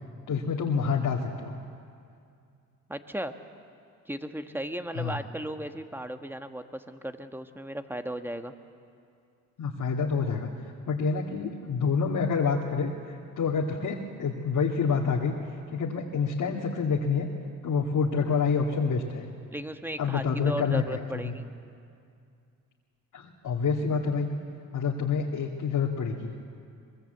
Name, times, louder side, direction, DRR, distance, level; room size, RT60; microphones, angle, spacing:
voice 1, 0.3-1.6 4.9-5.2 9.6-10.5 10.9-15.3 15.7-17.3 17.6-19.3 20.0-21.3 23.1-24.3 24.7-26.3, left 5 dB, 60° left, -2 dB, 2.3 m, -27 dB
voice 2, 2.9-3.3 4.1-8.5 19.5-21.5, equal, 5° right, 7 dB, 1.5 m, -36 dB
23.5 x 21.5 x 8.1 m, 2.4 s
cardioid pair, 75°, 35 cm